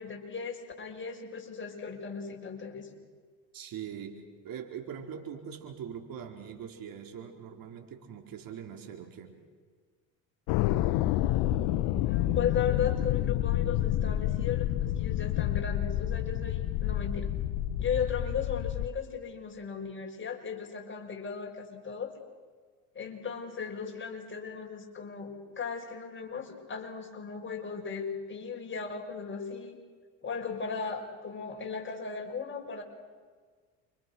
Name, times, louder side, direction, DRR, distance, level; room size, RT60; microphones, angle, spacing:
voice 1, 0.0-2.9 12.0-17.3 17.8-22.1 22.9-29.8 30.2-32.8, left 6 dB, 30° left, 2 dB, 6.1 m, -36 dB
voice 2, 3.5-9.3, right 8 dB, 55° right, 3 dB, 4.3 m, -42 dB
sound 1, 10.5-18.9, left 13 dB, 70° left, 1.3 m, -29 dB
29.0 x 26.0 x 6.3 m, 1.5 s
hypercardioid pair, 75°, 41 cm